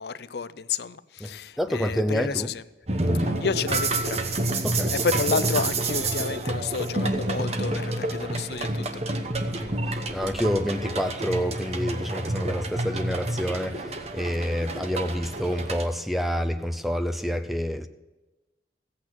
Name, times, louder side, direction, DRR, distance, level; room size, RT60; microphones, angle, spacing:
voice 1, 0.0-2.6 3.2-4.2 4.9-9.0, left 5 dB, 65° left, 0.5 m, -30 dB
voice 2, 1.6-2.5 4.6-4.9 9.6-17.9, equal, ahead, 0.6 m, -28 dB
sound 1, 2.9-15.9, right 2 dB, 35° right, 1.0 m, -28 dB
15.0 x 8.6 x 6.1 m
head